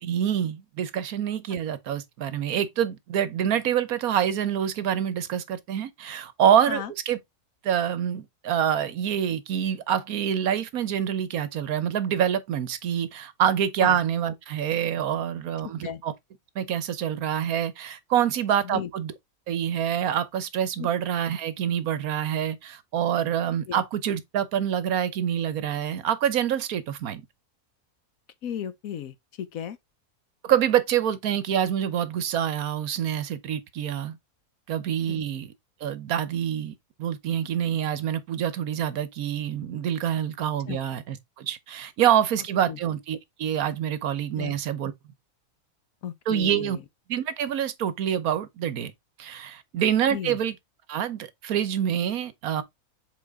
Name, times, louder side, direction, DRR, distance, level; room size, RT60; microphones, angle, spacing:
voice 1, 0.0-7.2 7.6-16.1 16.6-19.1 19.5-27.3 30.4-34.2 34.7-35.5 35.8-44.9 46.3-46.8 47.1-48.9 49.2-50.5 50.9-52.6, right 9 dB, 75° right, 1.3 m, -26 dB
voice 2, 28.4-29.8 35.1-35.2 40.7-40.8 42.7-42.8 44.4-44.5 46.0-46.8 50.1-50.4, left 9 dB, 70° left, 1.2 m, -35 dB
7.4 x 4.0 x 3.5 m
omnidirectional pair, 1.6 m